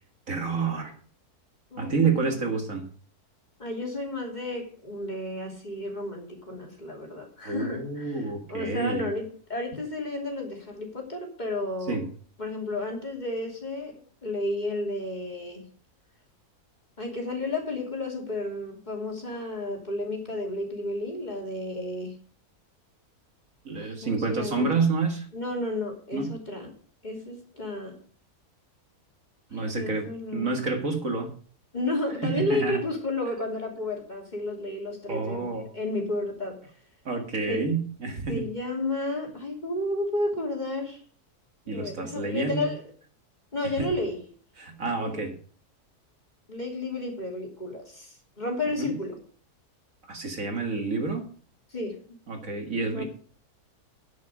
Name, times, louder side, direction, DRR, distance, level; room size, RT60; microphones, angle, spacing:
voice 1, 0.3-1.0 1.8-2.9 7.4-9.1 11.9-12.1 23.6-25.3 26.1-26.4 29.5-31.3 32.2-32.8 35.1-35.7 37.1-38.5 41.7-42.7 43.8-43.9 44.6-45.4 48.8-48.9 50.1-51.3 52.3-53.0, right 4 dB, 55° right, 4 dB, 2.2 m, -28 dB
voice 2, 1.7-2.3 3.6-8.2 8.5-12.0 12.4-15.7 17.0-22.2 23.8-24.7 25.3-26.7 27.0-28.0 29.5-30.5 31.7-36.6 37.5-37.7 38.3-41.0 41.7-42.8 43.5-44.2 45.0-45.2 46.5-49.2 51.7-52.0 52.9-53.0, left 2 dB, 25° left, 0 dB, 3.1 m, -32 dB
9.9 x 9.5 x 4.9 m, 0.44 s
omnidirectional pair, 1.7 m